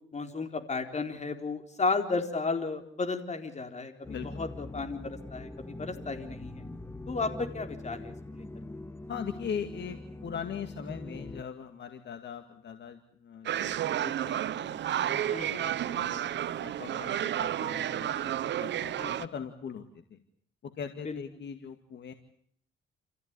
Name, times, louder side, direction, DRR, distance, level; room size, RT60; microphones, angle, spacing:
voice 1, 0.1-6.6 7.1-8.4 15.3-15.6 19.0-19.1 21.1-21.2, left 4 dB, 35° left, 6 dB, 4.2 m, -33 dB
sound 1, 4.0-11.4, left 2 dB, 10° left, 1.3 m, -43 dB
voice 2, 9.1-20.2 20.6-22.1, left 7 dB, 60° left, 7 dB, 2.2 m, -41 dB
sound 2, 13.5-19.3, right 11 dB, 65° right, 1.0 m, -31 dB
29.0 x 15.0 x 9.8 m, 0.64 s
cardioid pair, 90°, 20 cm